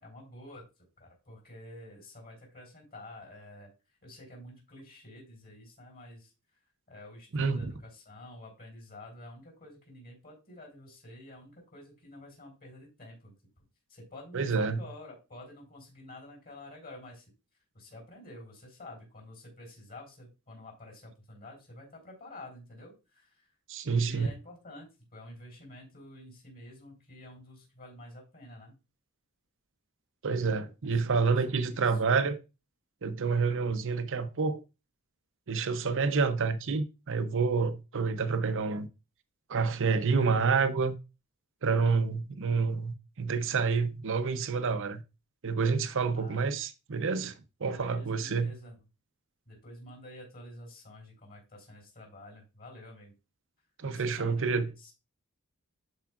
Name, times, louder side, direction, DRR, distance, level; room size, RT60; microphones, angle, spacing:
voice 1, 0.0-0.7 1.0-3.7 4.0-6.3 6.9-13.4 13.9-17.2 17.7-23.5 23.9-28.8 31.5-31.8 46.1-46.5 47.6-48.8 49.5-53.1 53.8-54.9, left 1 dB, 45° left, 4.1 m, -49 dB
voice 2, 7.3-7.7 14.3-14.8 23.7-24.3 30.2-32.4 33.0-34.6 35.5-38.9 39.5-41.0 41.6-45.0 45.4-47.3 47.6-48.5 53.8-54.7, right 4 dB, 60° right, 0.7 m, -28 dB
12.0 x 4.8 x 2.4 m
head